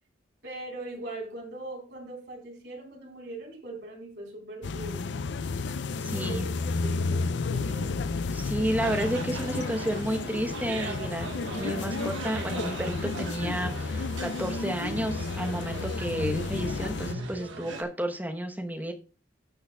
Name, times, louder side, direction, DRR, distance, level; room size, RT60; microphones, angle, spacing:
voice 1, 0.4-5.1 5.9-6.5 6.8-8.0 11.8-12.0, right 2 dB, 65° right, 1 dB, 4.1 m, -41 dB
sound 1, 4.6-17.1, left 4 dB, 70° left, 0.5 m, -32 dB
voice 2, 6.0-6.4 8.3-18.9, right 1 dB, 10° right, 4 dB, 1.0 m, -31 dB
sound 2, 8.8-17.8, right 3 dB, 85° right, 1.6 m, -39 dB
18.5 x 6.4 x 2.3 m, 0.34 s
head